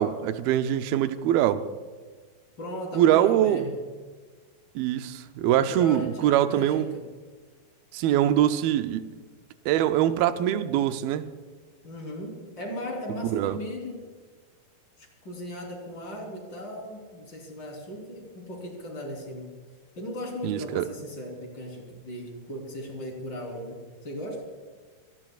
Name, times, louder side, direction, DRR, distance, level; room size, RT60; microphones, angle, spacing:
voice 1, 0.0-1.7 2.9-3.7 4.8-6.9 7.9-9.1 9.7-11.3 13.2-13.6 20.4-20.9, right 11 dB, 80° right, 2.4 m, -23 dB
voice 2, 2.6-3.8 5.5-7.0 11.8-14.0 15.0-19.5 20.0-24.4, equal, 30° left, 4.0 m, -37 dB
24.5 x 19.0 x 2.4 m
omnidirectional pair, 4.4 m